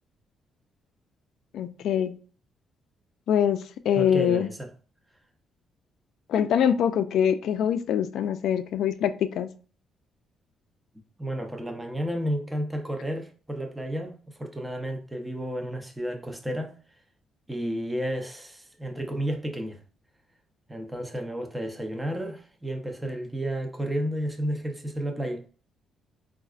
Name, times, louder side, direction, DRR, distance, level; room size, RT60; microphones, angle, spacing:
voice 1, 1.5-2.2 3.3-4.5 6.3-9.5, left 9 dB, 75° left, 0.3 m, -24 dB
voice 2, 3.9-4.7 11.2-16.7 17.5-19.8 20.7-25.4, equal, 10° right, 0.6 m, -32 dB
3.9 x 2.4 x 2.4 m
cardioid pair, 90°, 0 cm